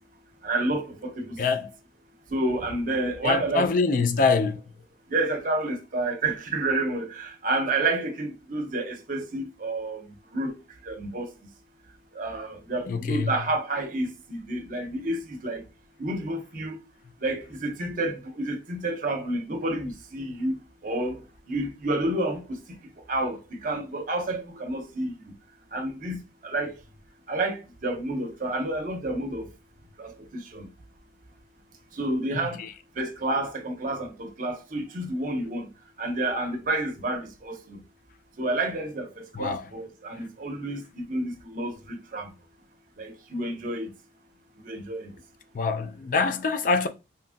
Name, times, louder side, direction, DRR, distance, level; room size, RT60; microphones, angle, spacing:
voice 1, 0.4-1.4 2.3-3.7 4.0-4.1 5.1-10.0 10.3-10.5 10.9-11.3 12.1-15.6 16.0-16.8 17.2-20.6 20.8-22.6 23.1-25.1 25.7-26.7 27.3-29.5 30.0-30.7 31.9-32.6 33.0-35.7 36.0-37.8 38.4-42.3 43.0-43.9 44.6-45.1, right 2 dB, 45° right, 0.6 m, -29 dB
voice 2, 1.4-1.7 3.2-4.6 12.9-13.3 32.3-32.7 39.3-39.7 45.5-46.9, left 4 dB, 45° left, 0.3 m, -25 dB
2.9 x 2.4 x 2.5 m
head